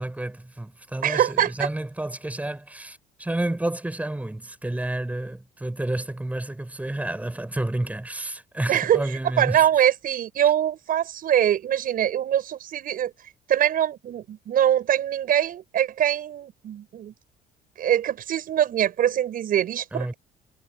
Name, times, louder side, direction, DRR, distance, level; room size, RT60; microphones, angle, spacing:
voice 1, 0.0-9.6 19.9-20.1, right 1 dB, 10° right, 4.2 m, -30 dB
voice 2, 1.0-1.7 8.7-9.0 9.4-13.1 13.5-17.1 17.8-20.1, right 10 dB, 60° right, 6.8 m, -23 dB
cardioid pair, 110°, 17 cm